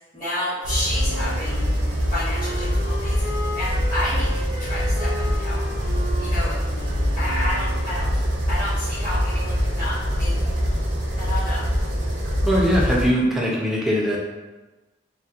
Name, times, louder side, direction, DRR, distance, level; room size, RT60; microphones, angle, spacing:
voice 1, 0.1-1.6 2.1-3.3 3.5-5.6 6.2-6.6 7.2-8.2 8.5-10.5 11.2-11.7, left 1 dB, 20° left, -15 dB, 0.8 m, -30 dB
sound 1, 0.6-13.1, equal, 65° right, 0.5 m, -24 dB
Wind instrument woodwind instrument, 0.9-8.0, left 1 dB, 65° left, 0.9 m, -36 dB
voice 2, 12.4-14.2, equal, ahead, -4 dB, 0.4 m, -21 dB
2.8 x 2.0 x 2.4 m, 1.2 s
head